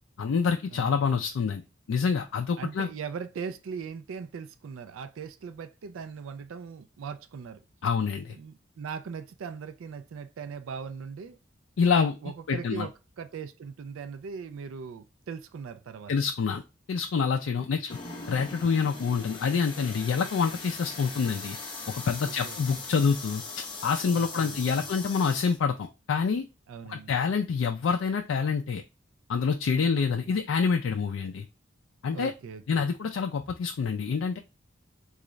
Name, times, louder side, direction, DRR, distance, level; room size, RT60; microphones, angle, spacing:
voice 1, 0.2-1.6 1.9-2.9 7.8-8.4 11.8-12.2 12.5-12.9 16.1-16.6 16.9-18.0 18.3-21.6 21.9-26.4 26.9-28.8 29.3-31.5 32.0-32.3 32.7-34.4, left 5 dB, 75° left, 0.4 m, -27 dB
voice 2, 0.7-1.0 2.6-7.6 8.3-11.4 12.2-16.1 17.6-17.7 22.2-22.8 24.2-24.8 26.7-27.1 30.1-30.2 32.1-32.9, right 6 dB, 85° right, 0.3 m, -40 dB
sound 1, 17.9-25.6, left 3 dB, 25° left, 0.7 m, -40 dB
3.8 x 2.4 x 3.1 m
head